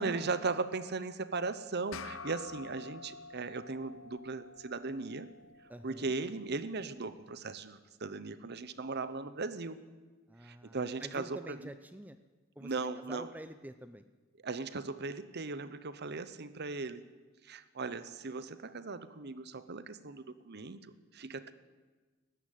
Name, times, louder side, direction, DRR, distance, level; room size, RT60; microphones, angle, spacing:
voice 1, 0.0-5.3 5.8-9.8 10.4-11.6 12.6-13.3 14.4-17.0 17.4-20.8 21.1-21.5, right 3 dB, 55° right, 13 dB, 0.9 m, -38 dB
sound 1, 1.9-6.7, left 4 dB, 85° left, 0.8 m, -49 dB
voice 2, 5.7-6.2 10.3-12.2 12.6-14.0, right 1 dB, 10° right, 11 dB, 0.6 m, -48 dB
19.0 x 15.0 x 9.2 m, 1.3 s
head